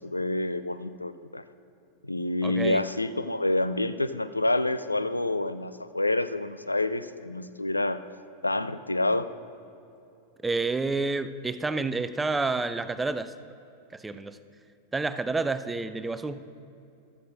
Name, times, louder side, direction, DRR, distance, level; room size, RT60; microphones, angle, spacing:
voice 1, 0.0-1.4 2.0-8.0 8.4-9.3, left 2 dB, 85° left, 13 dB, 0.3 m, -28 dB
voice 2, 2.4-2.8 10.4-13.3 13.9-14.4 14.9-16.4, right 3 dB, 10° right, 12 dB, 0.4 m, -29 dB
14.0 x 12.5 x 2.6 m, 2.7 s
figure-of-eight pair, 90°, 0 cm